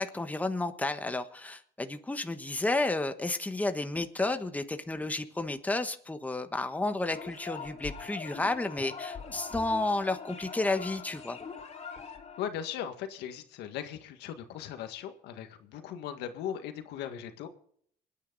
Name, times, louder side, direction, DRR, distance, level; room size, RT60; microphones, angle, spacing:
voice 1, 0.0-11.4, left 2 dB, 10° left, 1.3 m, -31 dB
sound 1, 7.1-12.4, left 5 dB, 40° left, 3.3 m, -43 dB
voice 2, 12.4-17.5, left 9 dB, 85° left, 1.8 m, -38 dB
27.0 x 9.8 x 4.0 m
cardioid pair, 110°, 17 cm